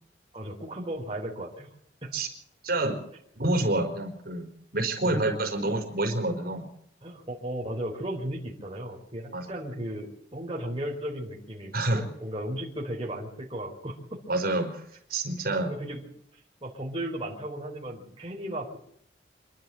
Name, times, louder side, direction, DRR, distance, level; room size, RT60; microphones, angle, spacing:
voice 1, 0.3-1.7 2.0-2.1 5.0-5.5 7.0-14.2 15.6-18.8, right 1 dB, 30° right, -2 dB, 4.3 m, -36 dB
voice 2, 2.6-3.0 3.3-6.7 9.3-9.4 11.7-12.0 14.3-14.7 15.1-15.7, right 2 dB, 50° right, 3 dB, 4.8 m, -27 dB
26.5 x 12.5 x 7.8 m, 0.68 s
head